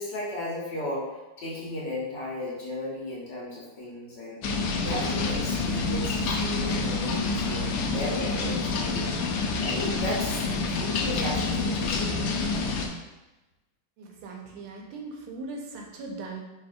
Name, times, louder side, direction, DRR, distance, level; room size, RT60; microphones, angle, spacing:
voice 1, 0.0-4.4 4.8-9.1 9.6-12.2, left 1 dB, 60° left, -5 dB, 1.6 m, -35 dB
sound 1, 4.4-12.9, left 3 dB, 85° left, 0.9 m, -28 dB
voice 2, 14.0-16.4, right 3 dB, 85° right, 1 dB, 1.6 m, -39 dB
5.3 x 3.4 x 2.5 m, 1.1 s
omnidirectional pair, 2.3 m